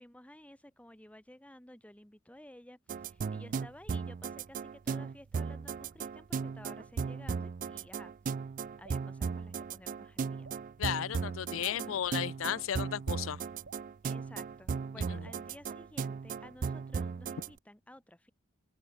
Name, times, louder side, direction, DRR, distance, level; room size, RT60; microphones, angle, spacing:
voice 1, 0.0-8.1 8.8-10.5 11.6-12.0 14.1-18.3, left 1 dB, 5° left, 1.4 m, -54 dB
sound 1, 2.9-17.5, right 5 dB, 40° right, 0.3 m, -36 dB
Drip, 8.8-9.1 10.4-10.7 12.0-12.3 13.6-13.9 15.2-15.5, right 3 dB, 65° right, 1.6 m, -55 dB
voice 2, 10.8-13.4 15.1-15.3, left 9 dB, 75° left, 0.4 m, -34 dB
open air
head